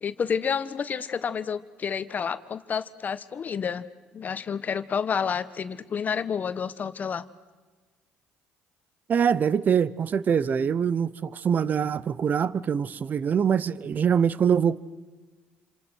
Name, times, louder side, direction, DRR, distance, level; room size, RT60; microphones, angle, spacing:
voice 1, 0.0-3.9 4.1-7.2, left 7 dB, 45° left, 1.3 m, -29 dB
voice 2, 9.1-14.8, right 7 dB, 45° right, 0.9 m, -24 dB
28.0 x 26.5 x 6.4 m
supercardioid pair, 75°, 4 cm